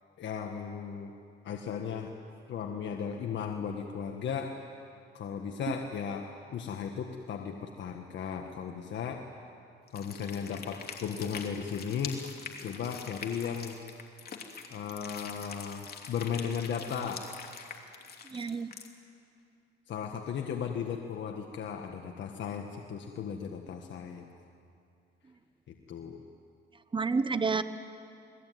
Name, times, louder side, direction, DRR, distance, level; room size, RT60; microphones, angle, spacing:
voice 1, 0.2-1.1 1.4-2.1 2.5-4.6 5.1-9.2 9.9-12.2 12.6-13.8 14.7-17.3 19.9-24.3 25.7-26.2, left 7 dB, 65° left, 3 dB, 1.7 m, -36 dB
sound 1, 9.9-18.9, left 6 dB, 50° left, 3.0 m, -44 dB
voice 2, 18.2-18.7 26.9-27.6, right 4 dB, 25° right, 11 dB, 1.3 m, -29 dB
29.0 x 20.5 x 9.5 m, 2.5 s
cardioid pair, 90°, 20 cm